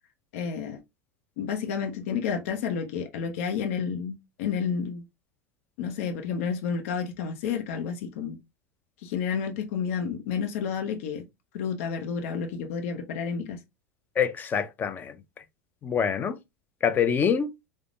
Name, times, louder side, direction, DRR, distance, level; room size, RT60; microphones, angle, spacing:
voice 1, 0.3-0.8 1.4-5.0 5.8-8.4 9.0-11.2 11.5-13.6, left 6 dB, 70° left, 0.6 m, -30 dB
voice 2, 14.2-15.2 15.8-16.4 16.8-17.5, left 7 dB, 25° left, 0.4 m, -25 dB
3.5 x 2.0 x 2.4 m
supercardioid pair, 130°, 8 cm